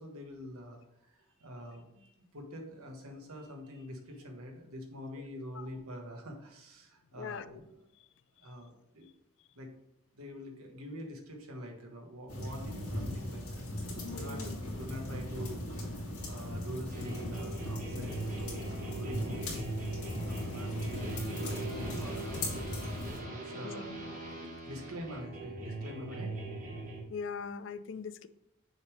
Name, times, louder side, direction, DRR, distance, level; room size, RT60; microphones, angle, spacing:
voice 1, 0.0-7.8 8.4-9.1 9.5-9.7 10.1-13.6 14.1-19.6 20.2-22.7 23.1-23.9 24.6-26.3, equal, 90° right, 2 dB, 1.3 m, -45 dB
voice 2, 7.1-7.6 14.0-14.5 23.6-24.0 27.1-28.3, left 5 dB, 55° left, 14 dB, 0.3 m, -41 dB
sound 1, 12.3-23.2, left 1 dB, 90° left, 2.2 m, -38 dB
sound 2, 16.9-27.0, right 2 dB, 40° right, 1.2 m, -41 dB
6.4 x 3.4 x 4.9 m, 0.81 s
head